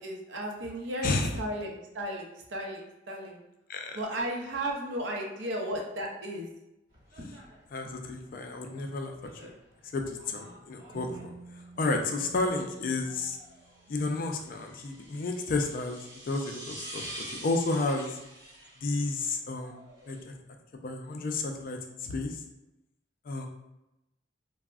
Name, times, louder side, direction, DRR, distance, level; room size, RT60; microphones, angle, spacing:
voice 1, 0.0-3.4 3.9-6.5, right 1 dB, 85° right, 1 dB, 0.5 m, -35 dB
sound 1, 6.9-20.2, right 1 dB, 45° right, 1.0 m, -48 dB
voice 2, 7.7-9.1 9.4-9.5 9.9-11.2 11.8-13.4 13.9-18.2 18.8-19.8 20.1-20.3 20.8-22.4 23.3-23.5, left 3 dB, 50° left, 3 dB, 0.3 m, -31 dB
sound 2, 10.9-14.8, right 3 dB, 15° right, 0.5 m, -51 dB
3.4 x 2.0 x 2.3 m, 0.93 s
head